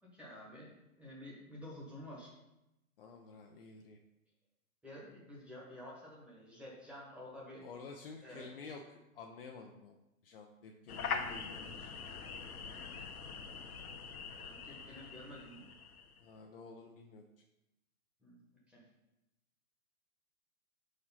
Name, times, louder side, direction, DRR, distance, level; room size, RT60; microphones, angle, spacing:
voice 1, 0.0-2.3 4.8-7.6 8.2-8.5 14.4-15.7 18.2-18.4 18.7-18.8, left 1 dB, 5° right, -5 dB, 1.4 m, -50 dB
voice 2, 3.0-4.0 7.6-8.8 9.1-10.0 10.2-12.0 16.2-17.2, left 4 dB, 40° left, 2 dB, 0.6 m, -51 dB
sound 1, 10.9-16.2, left 5 dB, 75° left, 1.1 m, -43 dB
5.2 x 4.8 x 5.7 m, 0.92 s
hypercardioid pair, 150°, 44 cm